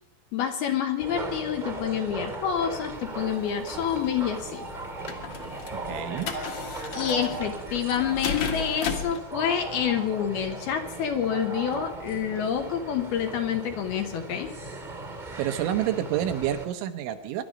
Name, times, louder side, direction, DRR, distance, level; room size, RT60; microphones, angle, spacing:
voice 1, 0.3-4.7 6.9-14.5, left 8 dB, 70° left, 6 dB, 2.6 m, -28 dB
sound 1, 1.0-16.7, right 2 dB, 20° right, 1.1 m, -37 dB
sound 2, 2.9-9.2, left 6 dB, 55° left, 2.2 m, -36 dB
voice 2, 5.7-6.3 15.4-17.4, right 11 dB, 80° right, 8 dB, 3.4 m, -28 dB
24.0 x 11.5 x 5.2 m, 0.83 s
omnidirectional pair, 5.4 m